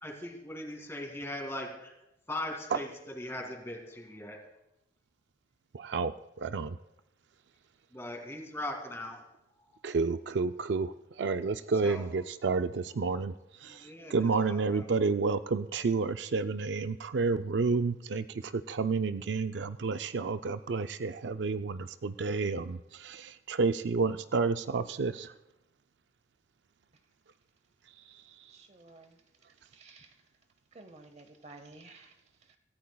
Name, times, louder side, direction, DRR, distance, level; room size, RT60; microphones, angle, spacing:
voice 1, 0.0-1.9 2.3-2.9 3.2-4.4 7.9-9.2 9.6-9.8 11.8-12.0 13.7-14.8, left 1 dB, 15° left, 2 dB, 2.2 m, -40 dB
voice 2, 5.7-6.8 9.8-25.3 28.1-28.6, right 4 dB, 65° right, 10 dB, 0.4 m, -30 dB
voice 3, 28.5-29.2 29.7-30.2 30.7-32.6, right 3 dB, 35° right, 8 dB, 0.9 m, -53 dB
25.0 x 14.5 x 2.3 m, 0.92 s
head